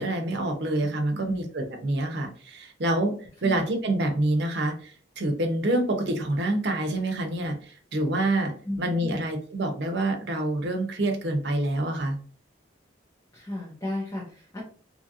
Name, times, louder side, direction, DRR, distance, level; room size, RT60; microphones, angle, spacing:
voice 1, 0.0-3.2 3.4-4.9 5.2-7.6 7.9-8.5 8.8-12.2, right 1 dB, 60° right, 4 dB, 0.6 m, -26 dB
voice 2, 1.1-1.4 3.4-3.6 8.6-9.2 13.3-14.6, left 1 dB, 15° left, -4 dB, 0.6 m, -34 dB
2.8 x 2.4 x 2.7 m, 0.44 s
head